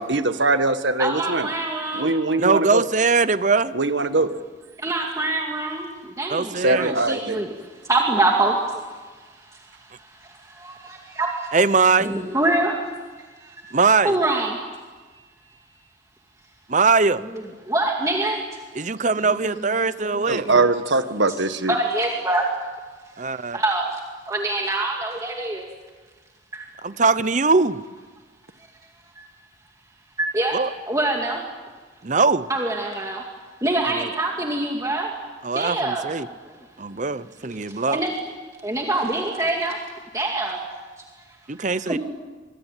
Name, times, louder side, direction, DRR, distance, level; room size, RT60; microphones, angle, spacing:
voice 1, 0.0-1.5 1.9-2.8 3.7-4.3 6.6-7.4 20.3-21.7, right 3 dB, 75° right, 9 dB, 1.6 m, -22 dB
voice 2, 1.0-2.1 4.8-5.9 6.2-7.5 7.9-8.6 10.6-11.3 12.0-12.7 14.0-14.5 17.7-18.4 21.7-22.4 23.5-23.9 24.3-25.6 30.2-30.5 30.9-31.4 32.5-33.2 33.6-35.1 35.6-36.0 37.9-38.1 38.6-39.8 40.1-40.6 41.9-42.0, right 2 dB, 15° right, 0 dB, 2.3 m, -24 dB
voice 3, 2.4-3.7 6.3-7.0 11.5-12.1 13.7-14.2 16.7-17.2 18.7-20.7 23.2-23.6 26.8-27.8 30.5-30.7 32.0-32.5 33.9-34.1 35.4-36.3 36.8-38.0 41.5-42.0, right 4 dB, 40° right, 15 dB, 0.8 m, -21 dB
25.5 x 23.0 x 9.2 m, 1.4 s
head